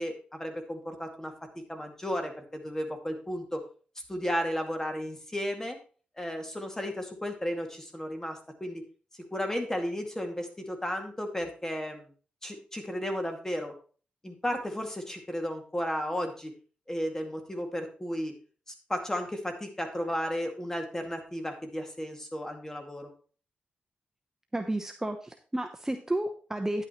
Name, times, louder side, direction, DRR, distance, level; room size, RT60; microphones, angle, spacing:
voice 1, 0.0-1.3 1.7-3.6 4.1-5.8 6.2-8.8 9.3-12.1 12.4-13.7 14.2-16.5 16.9-18.3 18.9-23.1, equal, 15° left, 4 dB, 2.2 m, -34 dB
voice 2, 24.5-26.8, right 1 dB, 15° right, 5 dB, 0.9 m, -32 dB
10.0 x 8.8 x 3.1 m, 0.38 s
cardioid pair, 80°, 3 cm